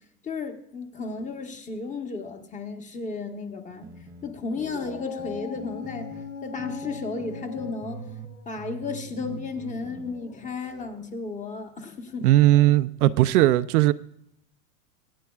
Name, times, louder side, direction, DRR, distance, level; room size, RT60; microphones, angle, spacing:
voice 1, 0.2-3.9 4.2-6.1 6.4-8.0 8.5-12.6, left 4 dB, 15° left, 1.0 m, -34 dB
sound 1, 3.7-6.3 6.6-8.3 8.6-10.2, right 5 dB, 10° right, 0.4 m, -43 dB
Dog, 4.4-11.1, left 5 dB, 90° left, 3.7 m, -41 dB
voice 2, 12.2-13.9, right 15 dB, 70° right, 0.6 m, -18 dB
23.5 x 9.1 x 2.3 m
supercardioid pair, 135°, 46 cm